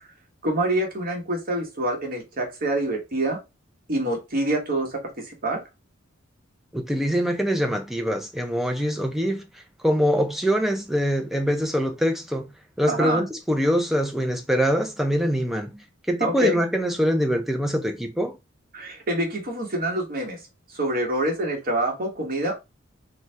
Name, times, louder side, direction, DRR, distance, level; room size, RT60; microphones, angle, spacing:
voice 1, 0.4-3.4 3.9-5.6 12.9-13.2 16.2-16.6 18.7-20.4 20.7-22.6, right 1 dB, 45° right, 1.2 m, -26 dB
voice 2, 6.7-9.4 9.8-12.5 12.8-15.8 16.1-18.4, equal, ahead, 0.5 m, -24 dB
2.6 x 2.4 x 3.3 m
head